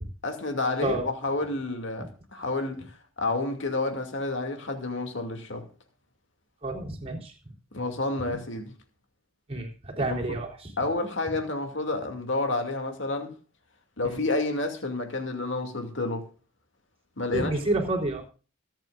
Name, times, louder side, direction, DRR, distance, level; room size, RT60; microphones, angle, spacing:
voice 1, 0.2-5.7 7.7-8.7 10.0-10.2 10.8-13.3 14.0-16.3 17.2-17.5, left 2 dB, 60° left, 2.4 m, -30 dB
voice 2, 6.6-7.5 9.5-10.7 14.0-14.2 17.3-18.3, right 2 dB, 30° right, 3.7 m, -30 dB
24.5 x 8.9 x 2.5 m
head